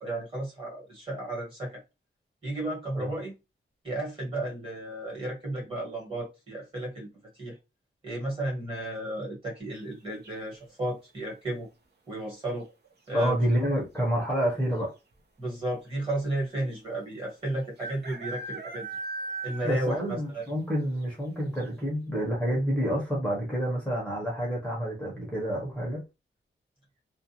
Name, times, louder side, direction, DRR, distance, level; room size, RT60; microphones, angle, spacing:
voice 1, 0.0-1.8 2.4-3.4 3.8-7.1 7.4-7.5 8.0-11.7 12.1-12.6 13.1-13.4 15.4-18.9 19.4-20.4, right 1 dB, 25° right, 1.4 m, -33 dB
sound 1, 10.2-10.7 12.5-12.9 13.2-13.3 13.5-14.0 14.8-14.9 15.1-15.2 16.8-16.9 17.8-20.1 20.4-20.5 21.0-21.1 21.6-21.7, right 3 dB, 55° right, 0.7 m, -38 dB
voice 2, 13.1-14.9 19.6-26.1, equal, 5° left, 0.8 m, -28 dB
2.4 x 2.2 x 2.8 m
wide cardioid pair, 175°, 21 cm